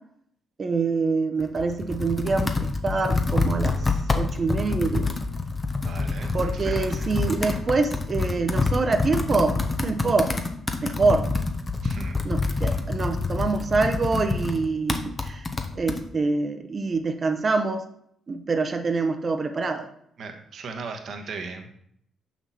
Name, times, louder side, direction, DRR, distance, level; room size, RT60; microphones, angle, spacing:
voice 1, 0.6-5.1 6.3-10.3 10.8-11.2 12.2-15.5 15.8-17.8 18.3-19.9, right 3 dB, 45° right, 6 dB, 0.8 m, -25 dB
Computer keyboard, 1.4-16.0, left 3 dB, 30° left, 0.9 m, -27 dB
voice 2, 5.8-6.8 11.8-12.2 20.2-21.7, right 3 dB, 60° right, 4 dB, 1.2 m, -36 dB
6.0 x 5.9 x 4.1 m, 0.68 s
supercardioid pair, 60°, 0 cm